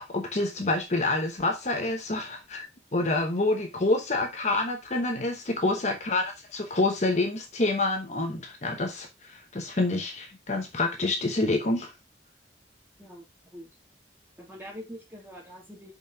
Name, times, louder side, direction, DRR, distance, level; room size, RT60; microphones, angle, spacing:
voice 1, 0.0-2.7 2.9-6.2 6.5-11.9, left 2 dB, 40° left, 1.0 m, -27 dB
voice 2, 13.0-13.7 14.4-15.9, equal, 10° right, 2.9 m, -44 dB
5.7 x 5.3 x 4.6 m
head